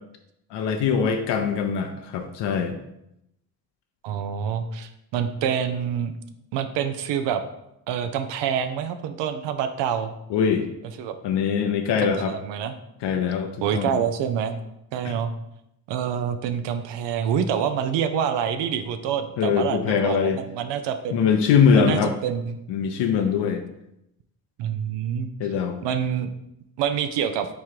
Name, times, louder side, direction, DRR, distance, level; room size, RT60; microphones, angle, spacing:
voice 1, 0.5-2.8 10.3-10.6 11.2-12.3 13.0-13.9 15.0-15.1 19.4-20.4 21.1-22.1 22.7-23.6 25.4-25.8, left 6 dB, 75° left, 5 dB, 0.6 m, -22 dB
voice 2, 4.0-6.1 6.5-7.4 7.9-10.1 11.0-11.1 12.0-12.8 13.6-14.6 14.9-15.3 15.9-21.2 21.7-22.6 24.6-25.3 25.8-26.3 26.8-27.5, right 8 dB, 80° right, 9 dB, 0.5 m, -26 dB
3.7 x 3.1 x 4.5 m, 0.83 s
cardioid pair, 85°, 42 cm